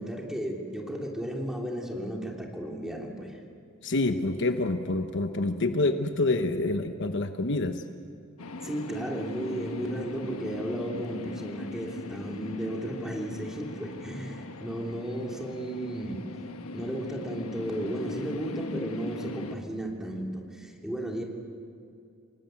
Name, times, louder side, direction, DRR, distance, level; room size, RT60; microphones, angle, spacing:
voice 1, 0.0-3.4 8.6-16.3 16.7-21.2, right 1 dB, ahead, -1 dB, 3.1 m, -34 dB
voice 2, 3.8-7.8, left 2 dB, 55° left, 7 dB, 1.0 m, -27 dB
sound 1, 8.4-19.6, left 2 dB, 75° left, 1.3 m, -39 dB
28.5 x 19.0 x 7.8 m, 2.5 s
head